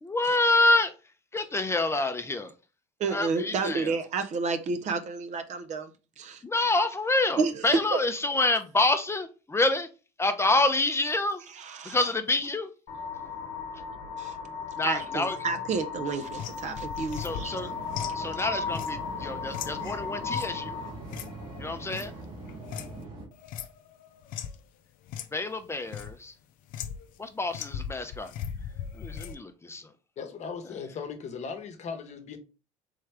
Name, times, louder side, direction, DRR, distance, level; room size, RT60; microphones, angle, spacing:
voice 1, 0.0-0.9 1.3-2.5 3.1-3.9 6.4-9.9 10.2-11.4 11.9-12.7 14.8-15.4 17.2-17.7 18.1-20.8 21.6-22.1 25.3-26.3 27.2-28.3 29.0-29.9, left 2 dB, 15° left, 0.6 m, -27 dB
voice 2, 3.0-5.9 6.2-6.4 7.4-7.6 7.9-8.0 11.6-12.0 14.2-14.4 14.8-17.6, right 4 dB, 50° right, 0.7 m, -30 dB
sound 1, 12.9-20.9, left 5 dB, 75° left, 0.9 m, -36 dB
sound 2, 16.2-23.0 23.3-24.6 25.1-25.3 25.6-26.2 26.7-27.2 27.5-29.4, left 9 dB, 60° left, 0.5 m, -39 dB
sound 3, 17.2-23.3, right 3 dB, 70° right, 1.5 m, -42 dB
voice 3, 30.2-32.4, left 6 dB, 45° left, 0.9 m, -38 dB
3.6 x 3.2 x 3.3 m
hypercardioid pair, 75°, 16 cm